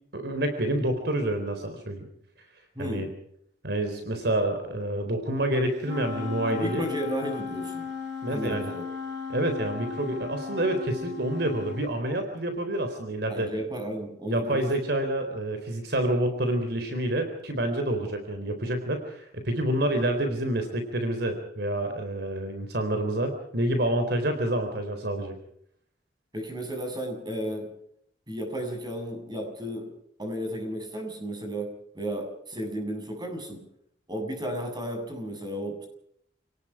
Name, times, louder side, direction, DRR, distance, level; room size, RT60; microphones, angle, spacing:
voice 1, 0.1-2.1 2.8-3.1 3.6-6.9 8.2-8.7 9.3-13.5 14.3-25.4, right 1 dB, 65° right, 7 dB, 4.0 m, -28 dB
voice 2, 2.8-3.1 6.4-7.9 8.3-8.8 13.3-14.7 26.3-27.7 28.3-29.9 30.2-33.7 34.1-35.9, equal, 25° right, 4 dB, 7.6 m, -33 dB
Wind instrument woodwind instrument, 5.8-11.9, left 6 dB, 80° right, 6.2 m, -36 dB
29.0 x 19.0 x 5.0 m, 0.69 s
head